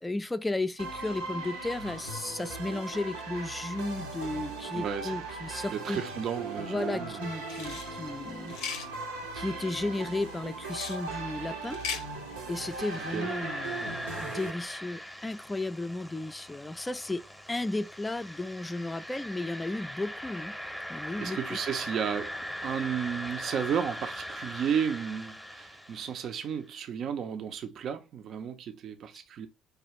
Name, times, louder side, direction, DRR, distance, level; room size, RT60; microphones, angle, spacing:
voice 1, 0.0-6.0 6.7-8.8 9.3-11.8 12.5-17.2 17.5-20.5 20.9-21.6, left 2 dB, 15° left, 0.3 m, -34 dB
sound 1, 0.8-14.5, right 3 dB, 90° right, 0.7 m, -38 dB
voice 2, 4.7-5.2 5.7-7.2 13.1-13.3 21.2-22.3 22.6-29.5, right 8 dB, 55° right, 0.4 m, -33 dB
sound 2, 7.5-7.9 8.5-8.9 10.7-11.0 11.6-12.0, left 7 dB, 75° left, 0.5 m, -37 dB
sound 3, 12.4-26.4, equal, ahead, 0.7 m, -41 dB
4.7 x 2.4 x 2.9 m
hypercardioid pair, 55°, 0 cm